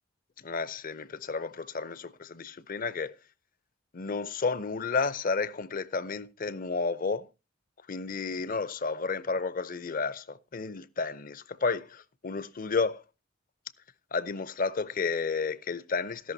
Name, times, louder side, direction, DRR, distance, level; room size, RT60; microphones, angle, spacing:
voice 1, 0.4-3.1 3.9-7.3 7.9-13.0 14.1-16.3, left 4 dB, 45° left, 0.6 m, -32 dB
13.5 x 11.0 x 2.7 m
head